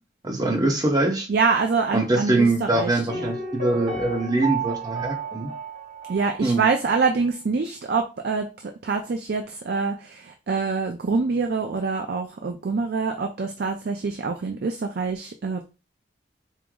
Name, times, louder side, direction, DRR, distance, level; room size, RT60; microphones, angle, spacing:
voice 1, 0.2-1.3 1.9-5.5 6.4-6.6, right 2 dB, 20° right, 2 dB, 0.7 m, -23 dB
voice 2, 1.3-3.3 6.1-15.6, right 4 dB, 60° right, 4 dB, 0.4 m, -25 dB
Piano, 3.1-6.9 7.1-7.2, right 4 dB, 80° right, 1.8 m, -32 dB
4.5 x 2.0 x 3.6 m, 0.30 s
head